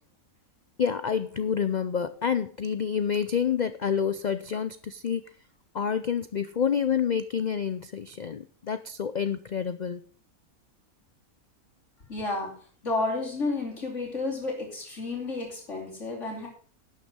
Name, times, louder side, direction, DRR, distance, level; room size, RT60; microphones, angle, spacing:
voice 1, 0.8-5.2 5.7-10.0, left 7 dB, 80° left, 13 dB, 0.4 m, -28 dB
voice 2, 12.1-12.6 12.8-16.5, left 3 dB, 55° left, -2 dB, 3.1 m, -31 dB
12.0 x 6.5 x 6.1 m, 0.43 s
omnidirectional pair, 1.5 m